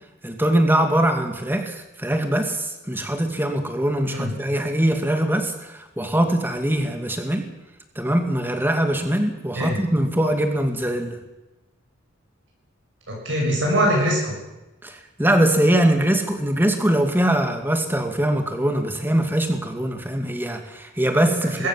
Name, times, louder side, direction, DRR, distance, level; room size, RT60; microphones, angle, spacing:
voice 1, 0.2-7.5 8.0-11.2 14.8-21.7, right 1 dB, 10° right, 5 dB, 2.3 m, -22 dB
voice 2, 4.0-4.4 9.6-9.8 13.1-14.4 21.6-21.7, equal, 65° right, -2 dB, 6.6 m, -22 dB
21.0 x 16.5 x 7.5 m, 1.0 s
head